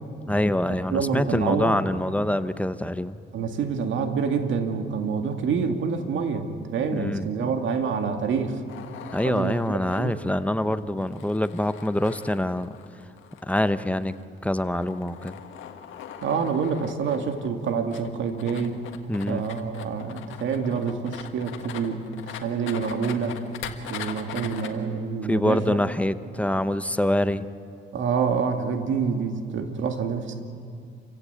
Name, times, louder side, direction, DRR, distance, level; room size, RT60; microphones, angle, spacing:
voice 1, 0.3-3.2 6.9-7.3 9.1-12.7 13.5-14.1 14.4-15.4 19.1-19.5 25.2-27.5, left 1 dB, 5° left, 12 dB, 0.8 m, -25 dB
voice 2, 0.9-1.8 3.3-8.6 9.2-9.6 10.0-10.2 16.2-18.8 19.3-23.4 23.9-25.8 27.9-30.4, right 6 dB, 70° right, 6 dB, 2.2 m, -27 dB
sound 1, 8.7-24.7, left 9 dB, 80° left, 1.7 m, -41 dB
28.0 x 16.0 x 8.2 m, 2.5 s
cardioid pair, 90°, 20 cm